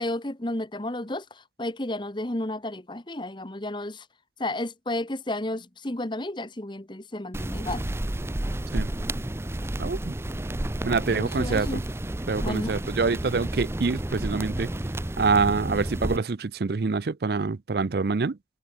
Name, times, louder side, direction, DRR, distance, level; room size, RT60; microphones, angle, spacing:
voice 1, 0.0-4.0 4.4-7.8 11.1-11.8 12.4-12.7, left 1 dB, 25° left, 1.4 m, -32 dB
sound 1, 7.3-16.2, right 1 dB, 15° right, 0.5 m, -31 dB
voice 2, 9.8-10.1 10.8-11.8 12.3-14.7 15.2-18.4, right 4 dB, 60° right, 0.5 m, -26 dB
head